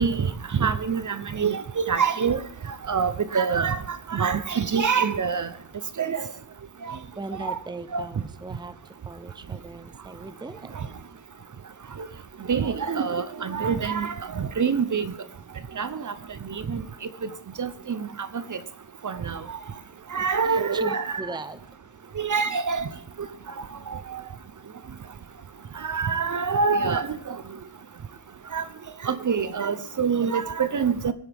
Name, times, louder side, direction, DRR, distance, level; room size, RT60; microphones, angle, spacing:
voice 1, 0.0-2.4 2.9-5.5 6.0-6.3 6.8-7.0 7.4-7.6 7.9-8.0 12.0-12.1 12.5-15.1 15.8-16.1 16.4-16.8 17.2-17.3 17.6-18.6 19.0-19.4 20.1-21.2 22.2-22.9 23.2-23.3 23.9-24.2 25.8-27.4 28.5-28.6 29.0-31.1, right 6 dB, 40° right, 0.8 m, -26 dB
voice 2, 6.9-10.8 17.0-17.1 20.2-21.6, right 3 dB, 10° right, 0.7 m, -39 dB
24.0 x 10.0 x 3.6 m
wide cardioid pair, 110°, 45 cm